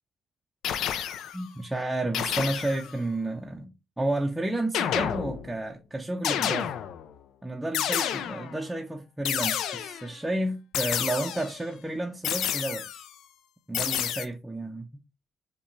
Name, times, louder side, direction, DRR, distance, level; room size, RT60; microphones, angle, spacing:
sound 1, 0.6-1.4 2.1-2.9 4.7-5.6 6.2-7.1 7.7-8.6 9.2-10.1 10.7-11.6 12.2-13.1 13.7-14.2, left 9 dB, 80° left, 0.3 m, -30 dB
voice 1, 1.3-6.7 7.4-13.1 13.7-15.0, right 1 dB, 10° right, 0.5 m, -31 dB
5.3 x 2.2 x 3.1 m
cardioid pair, 90°, 0 cm